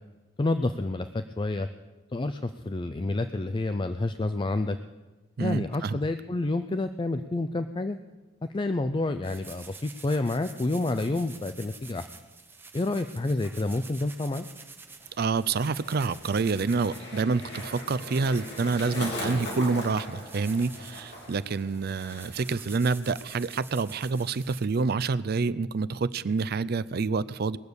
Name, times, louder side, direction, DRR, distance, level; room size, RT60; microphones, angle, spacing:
voice 1, 0.4-1.7 2.1-4.8 5.4-8.0 8.5-12.0 12.7-14.5, left 2 dB, 25° left, 10 dB, 0.4 m, -29 dB
voice 2, 5.4-6.0 15.2-27.6, right 4 dB, 55° right, 15 dB, 0.4 m, -27 dB
sound 1, 9.2-24.6, right 4 dB, 10° right, 0.9 m, -48 dB
Skateboard, 15.0-22.6 22.8-23.3, left 1 dB, 60° left, 3.7 m, -40 dB
20.5 x 6.9 x 8.0 m, 1.2 s
head